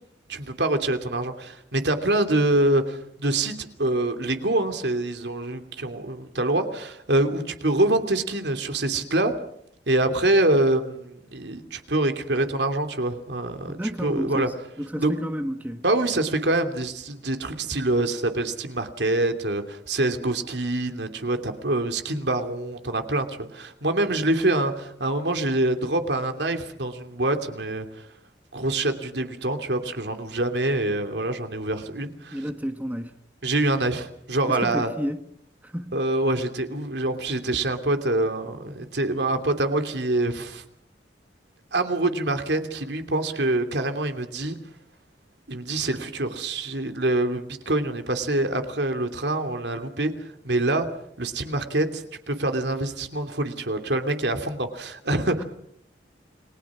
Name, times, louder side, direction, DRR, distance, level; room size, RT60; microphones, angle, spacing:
voice 1, 0.3-9.4 9.9-14.5 15.0-15.1 15.8-27.9 28.5-32.4 33.4-34.9 35.9-40.6 41.7-44.6 45.5-50.1 50.4-50.9 51.2-55.4, right 2 dB, 70° right, 7 dB, 2.9 m, -25 dB
voice 2, 13.7-15.8 32.3-33.2 34.5-35.2 35.6-36.0 55.4-55.5, equal, 10° right, 6 dB, 1.5 m, -31 dB
29.5 x 21.5 x 6.2 m, 0.69 s
head